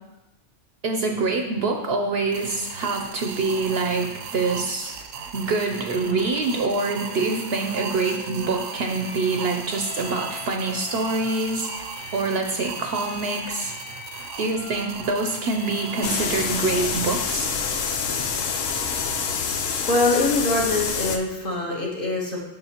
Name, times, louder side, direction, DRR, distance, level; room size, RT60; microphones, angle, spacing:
voice 1, 0.8-4.9 5.3-11.7 12.1-13.7 14.4-17.5, right 3 dB, 60° right, 3 dB, 0.7 m, -25 dB
sound 1, 2.3-17.1, right 6 dB, 85° right, 1.0 m, -37 dB
Bowed string instrument, 5.7-20.9, left 4 dB, 30° left, 0.5 m, -43 dB
sound 2, 16.0-21.2, left 6 dB, 90° left, 1.0 m, -26 dB
voice 2, 19.9-22.4, left 2 dB, 45° left, -2 dB, 1.3 m, -23 dB
6.8 x 5.9 x 2.9 m, 0.95 s
omnidirectional pair, 1.3 m